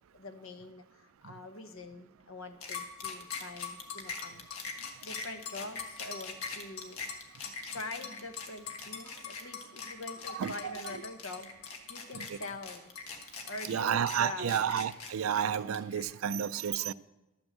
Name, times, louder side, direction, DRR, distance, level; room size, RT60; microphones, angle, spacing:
voice 1, 0.1-4.4 5.0-7.0 7.6-12.9 13.4-14.6, left 2 dB, 70° left, 1.0 m, -44 dB
sound 1, 2.6-16.0, left 5 dB, 85° left, 1.4 m, -41 dB
voice 2, 10.3-11.0 12.1-12.4 13.7-16.9, right 8 dB, 75° right, 0.4 m, -31 dB
12.0 x 6.2 x 7.4 m
head